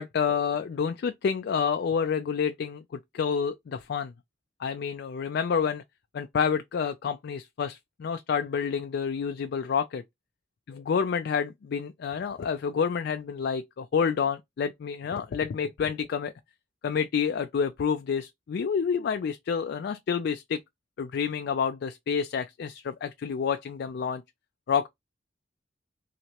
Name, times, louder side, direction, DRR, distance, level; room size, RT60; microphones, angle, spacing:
voice 1, 0.0-4.1 4.6-5.8 6.1-10.0 10.7-16.3 16.8-20.6 21.0-24.2 24.7-24.9, left 6 dB, 60° left, 0.3 m, -28 dB
3.2 x 2.9 x 2.8 m
head